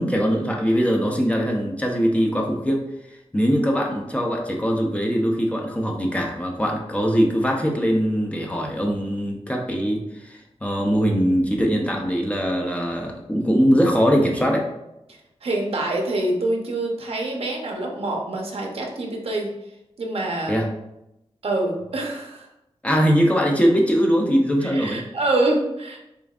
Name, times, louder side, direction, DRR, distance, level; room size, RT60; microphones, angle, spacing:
voice 1, 0.0-2.8 3.3-14.6 20.5-20.7 22.8-25.0, equal, 10° left, 0 dB, 0.6 m, -21 dB
voice 2, 15.4-19.5 20.0-20.7 21.4-22.5 24.6-26.0, right 2 dB, 65° right, 0 dB, 0.8 m, -25 dB
6.6 x 2.5 x 2.4 m, 0.87 s
wide cardioid pair, 130°, 11 cm